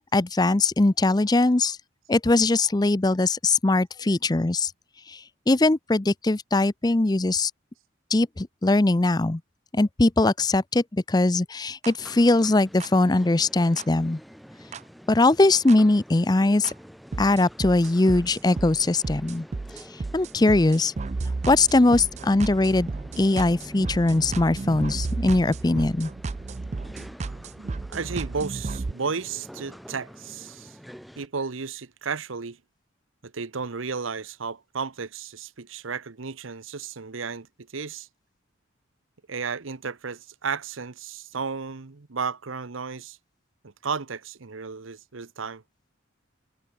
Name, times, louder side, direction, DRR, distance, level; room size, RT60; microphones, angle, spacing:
voice 1, 0.1-1.8 2.1-4.7 5.1-7.5 8.1-9.4 9.7-14.2 15.1-16.7 17.2-19.5 20.1-20.9 21.5-22.9 23.2-26.1, left 2 dB, 20° left, 0.5 m, -21 dB
sound 1, 11.8-11.9 12.8-12.9 13.8-13.9 14.7-14.8 15.7-15.8 16.6-16.7 17.1-28.9, right 3 dB, 35° right, 0.4 m, -33 dB
sound 2, 12.0-31.3, equal, ahead, 1.6 m, -46 dB
voice 2, 27.9-30.8 31.2-32.6 33.2-37.5 37.7-38.1 39.3-43.2 43.6-45.6, right 5 dB, 80° right, 0.9 m, -33 dB
head